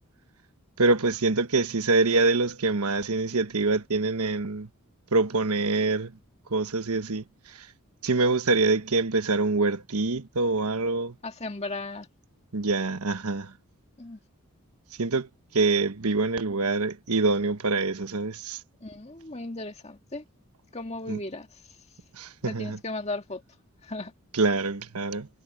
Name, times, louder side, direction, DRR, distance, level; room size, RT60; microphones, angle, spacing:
voice 1, 0.8-4.7 5.1-6.1 6.5-7.7 8.0-11.1 12.5-13.5 15.0-18.6 21.1-21.2 22.1-22.8 24.3-25.3, right 3 dB, 85° right, 1.2 m, -25 dB
voice 2, 11.2-12.1 14.0-14.2 18.8-20.2 20.7-21.5 22.4-23.4 23.8-24.1, left 2 dB, 30° left, 2.0 m, -36 dB
head